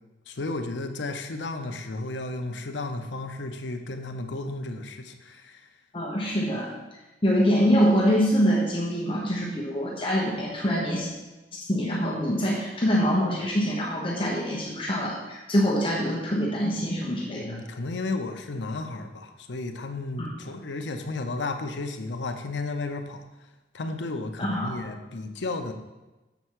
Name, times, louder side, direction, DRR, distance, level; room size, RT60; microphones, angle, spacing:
voice 1, 0.3-5.7 12.2-12.3 17.4-23.3 23.7-25.7, left 2 dB, 90° left, 6 dB, 0.7 m, -33 dB
voice 2, 5.9-6.7 7.2-11.1 11.7-17.6 20.2-20.3 24.4-24.8, equal, 30° left, -4 dB, 1.1 m, -24 dB
7.0 x 4.4 x 6.4 m, 1.1 s
head